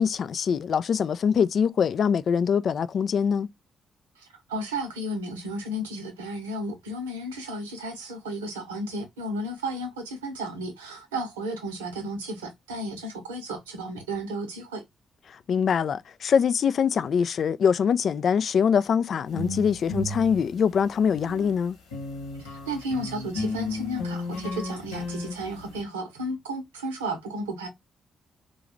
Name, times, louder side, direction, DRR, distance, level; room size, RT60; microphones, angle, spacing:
voice 1, 0.0-3.5 15.3-21.8, left 7 dB, 55° left, 0.3 m, -23 dB
voice 2, 4.2-14.8 22.4-27.7, right 1 dB, 85° right, 0.7 m, -33 dB
sound 1, 19.3-21.5 21.9-25.8, left 2 dB, 85° left, 1.2 m, -34 dB
3.9 x 2.3 x 3.0 m
hypercardioid pair, 40°, 0 cm